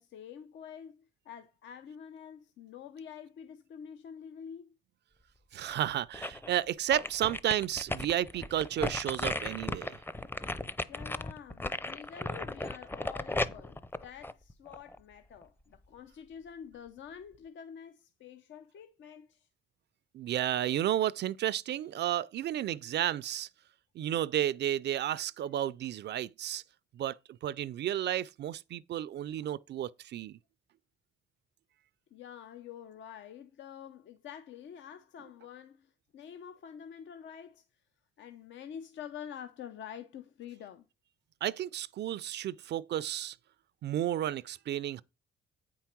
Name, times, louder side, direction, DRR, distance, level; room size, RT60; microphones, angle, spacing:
voice 1, 0.0-4.7 10.9-19.5 32.1-37.6 38.2-40.8, left 8 dB, 70° left, 0.8 m, -47 dB
voice 2, 5.5-10.0 20.1-23.5 24.0-26.6 26.9-30.4 41.4-43.4 43.8-45.0, right 11 dB, 60° right, 0.4 m, -32 dB
sound 1, 5.7-6.5 6.9-15.0 15.4-15.5, left 2 dB, 10° left, 0.6 m, -36 dB
8.5 x 4.6 x 5.9 m
cardioid pair, 90°, 20 cm